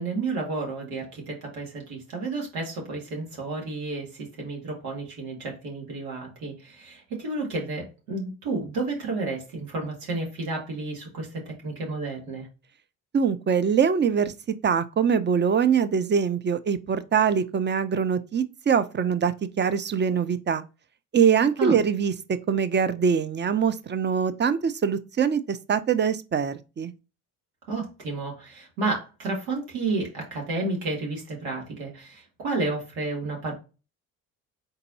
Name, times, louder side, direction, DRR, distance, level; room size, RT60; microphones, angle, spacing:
voice 1, 0.0-4.1 4.4-12.5 21.6-21.7 27.7-33.5, right 3 dB, 85° right, 2.0 m, -31 dB
voice 2, 13.1-14.3 14.6-20.6 21.1-22.1 22.5-26.9, right 7 dB, 25° right, 0.6 m, -23 dB
4.5 x 4.0 x 2.6 m
hypercardioid pair, 60°, 43 cm